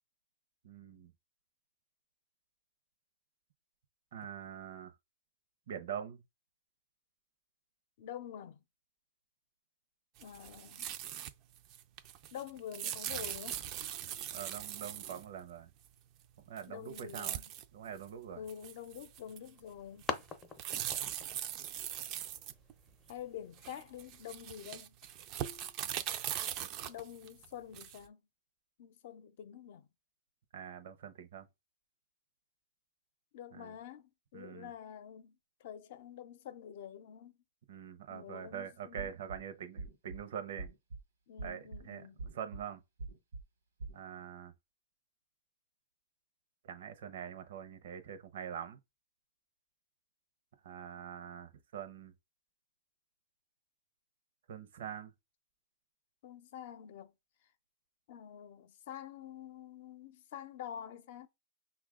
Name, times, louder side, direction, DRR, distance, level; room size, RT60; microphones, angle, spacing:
voice 1, 0.6-1.1 4.1-4.9 5.7-6.2 14.3-15.7 16.5-17.4 17.7-18.4 30.5-31.5 33.5-33.7 34.3-34.7 37.7-40.7 41.4-42.0 42.3-42.8 43.9-44.5 46.6-48.8 50.6-52.1 54.5-55.1, right 8 dB, 65° right, 0.7 m, -44 dB
voice 2, 8.0-8.6 10.2-10.9 12.3-13.6 16.7-17.4 18.3-20.0 23.1-25.0 26.9-28.2 28.8-29.9 33.3-37.3 38.1-39.1 41.3-42.2 56.2-57.1 58.1-61.3, left 9 dB, 55° left, 0.6 m, -47 dB
sound 1, 10.2-11.3 11.6-15.3 16.6-16.7 16.9-17.7 18.0-18.1 18.5-19.6 20.0-23.1 23.6-28.1, right 11 dB, 35° right, 0.4 m, -41 dB
sound 2, 19.1-24.3, left 5 dB, 20° left, 0.6 m, -46 dB
sound 3, 39.0-39.4 39.8-40.2 40.6-41.0 41.4-41.8 42.2-42.6 43.0-43.4 43.8-44.0, right 3 dB, 80° right, 1.1 m, -43 dB
5.8 x 2.3 x 3.7 m
hypercardioid pair, 140°, 0 cm